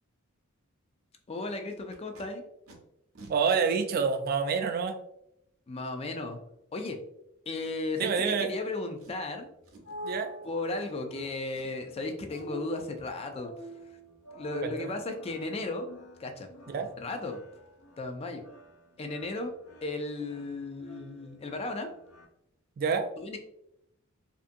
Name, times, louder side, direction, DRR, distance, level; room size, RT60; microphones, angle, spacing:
voice 1, 1.3-2.4 5.7-6.4 6.7-7.0 7.5-9.5 10.4-13.5 14.3-15.9 16.2-16.5 17.0-17.4 18.0-18.4 19.0-19.5 19.8-21.9 23.2-23.4, left 2 dB, 30° left, 5 dB, 0.3 m, -35 dB
Packing tape duct tape, 1.7-2.2 2.7-2.8 3.1-3.3 4.1-4.2 7.6-8.0 8.5-8.6 9.0-9.3 9.6-10.0 10.7-11.2 11.5-11.9 12.3-12.5 12.8-13.1 16.2-16.3 16.6-16.8 17.1-17.3 17.5-17.8 18.1-18.2, right 2 dB, 85° right, 0.6 m, -54 dB
voice 2, 3.3-5.0 8.0-8.5 10.0-10.3 14.6-14.9 16.7-16.9 22.8-23.1, right 5 dB, 45° right, 6 dB, 0.3 m, -27 dB
sound 1, 9.4-22.2, right 1 dB, 85° left, 0.5 m, -48 dB
2.6 x 2.5 x 2.5 m, 0.79 s
head